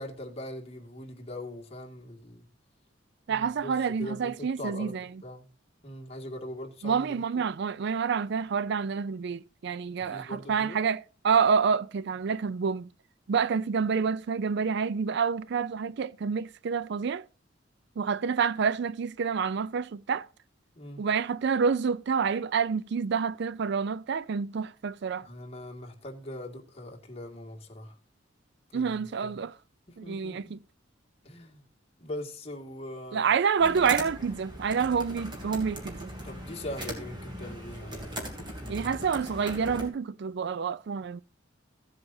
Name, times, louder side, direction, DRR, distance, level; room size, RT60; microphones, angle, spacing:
voice 1, 0.0-2.5 3.3-5.5 5.8-7.4 10.0-10.8 20.8-21.1 25.2-28.0 28.7-29.4 29.9-30.6 31.2-31.6 32.0-33.3 36.2-38.2 38.6-39.1, left 1 dB, 35° left, 2.0 m, -41 dB
voice 2, 3.3-5.0 6.8-12.9 13.3-17.2 18.0-20.3 21.0-25.3 28.7-29.5 30.0-30.6 33.1-36.1 38.7-41.2, right 6 dB, 65° right, 0.4 m, -28 dB
sound 1, 33.6-39.9, right 1 dB, 25° right, 3.0 m, -39 dB
16.5 x 7.8 x 2.7 m
head